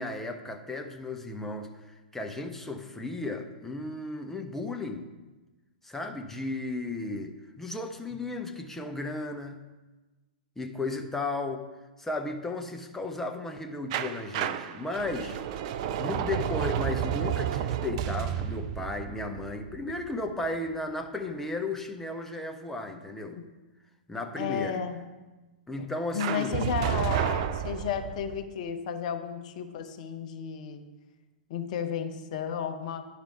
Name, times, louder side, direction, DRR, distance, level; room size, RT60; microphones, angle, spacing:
voice 1, 0.0-5.1 5.8-9.6 10.6-11.7 12.0-15.4 16.0-23.4 24.1-24.8 25.7-26.6 26.9-27.0, left 2 dB, 5° left, 5 dB, 0.6 m, -35 dB
sound 1, 13.9-20.7 26.2-28.4, right 11 dB, 45° right, 0.4 m, -31 dB
voice 2, 24.4-25.1 25.8-25.9 26.1-30.9 31.5-33.1, left 8 dB, 50° left, 7 dB, 0.7 m, -33 dB
10.5 x 5.0 x 4.6 m, 1.2 s
figure-of-eight pair, 110°, 5 cm